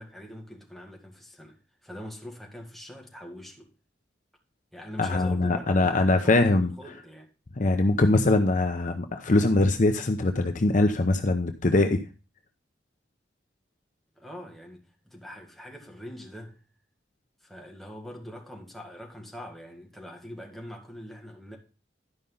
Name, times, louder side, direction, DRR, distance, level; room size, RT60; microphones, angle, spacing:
voice 1, 0.0-3.7 4.7-7.3 14.2-16.6 17.4-21.6, equal, ahead, 2.0 m, -43 dB
voice 2, 5.0-6.7 7.6-12.0, left 2 dB, 40° left, 0.7 m, -22 dB
11.5 x 5.3 x 5.4 m
head